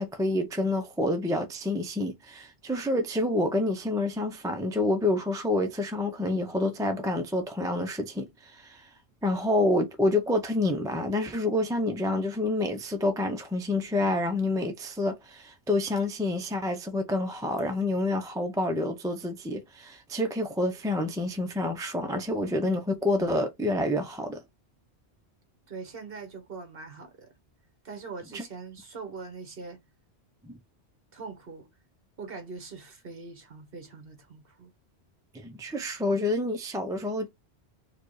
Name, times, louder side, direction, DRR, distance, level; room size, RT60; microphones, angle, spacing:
voice 1, 0.0-8.9 9.2-24.4 28.3-28.4 30.4-30.5 35.3-37.3, left 1 dB, 5° right, 0.3 m, -28 dB
voice 2, 25.7-27.3 27.8-29.8 31.1-31.7 32.2-34.7, right 4 dB, 60° right, 1.5 m, -42 dB
4.7 x 2.4 x 4.7 m
omnidirectional pair, 1.1 m